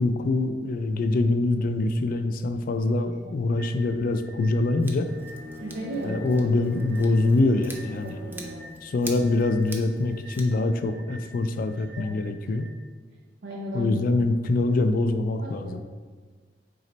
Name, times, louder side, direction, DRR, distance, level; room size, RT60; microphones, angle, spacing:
voice 1, 0.0-5.1 6.0-8.2 8.8-12.7 13.7-15.8, left 2 dB, 55° left, 8 dB, 0.3 m, -24 dB
voice 2, 3.0-3.4 5.6-6.3 8.0-8.6 12.0-12.2 13.4-14.0 15.4-15.8, right 1 dB, 90° right, -3 dB, 0.6 m, -36 dB
sound 1, 3.6-12.7, right 1 dB, 5° left, 1.0 m, -49 dB
Scissors, 4.8-10.4, right 2 dB, 10° right, 0.4 m, -45 dB
Bowed string instrument, 5.0-8.8, left 2 dB, 55° right, 1.2 m, -42 dB
4.1 x 3.1 x 3.9 m, 1.5 s
head